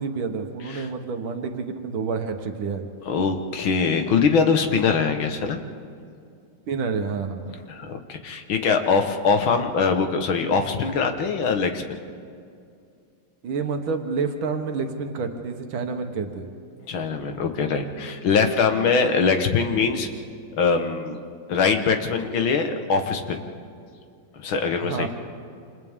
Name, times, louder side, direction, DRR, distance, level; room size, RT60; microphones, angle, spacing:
voice 1, 0.0-2.9 6.7-7.6 13.4-16.5 24.8-25.1, right 5 dB, 85° right, 5 dB, 2.0 m, -28 dB
voice 2, 3.1-5.6 7.7-11.8 16.9-20.1 20.6-21.2 21.5-23.4 24.4-25.1, left 5 dB, 80° left, 5 dB, 2.1 m, -22 dB
28.5 x 27.0 x 3.7 m, 2.4 s
omnidirectional pair, 2.2 m